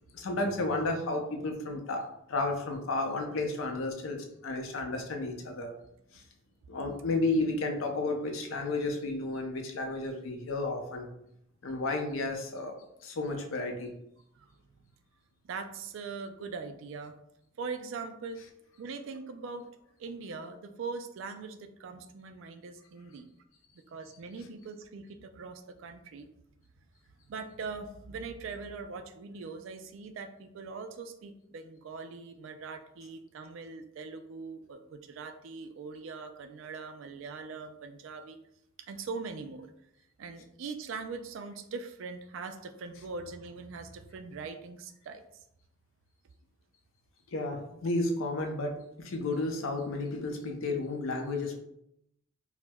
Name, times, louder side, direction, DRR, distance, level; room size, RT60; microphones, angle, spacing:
voice 1, 0.1-5.7 6.7-11.1 11.6-12.7 13.0-13.9 47.3-51.6, left 2 dB, 85° left, 3 dB, 0.5 m, -32 dB
voice 2, 14.4-14.9 15.4-17.1 17.6-18.4 18.8-19.7 20.0-23.3 23.9-26.3 27.2-38.4 38.9-39.7 40.2-45.2, right 4 dB, 70° right, 8 dB, 0.3 m, -41 dB
4.3 x 2.1 x 2.2 m, 0.78 s
head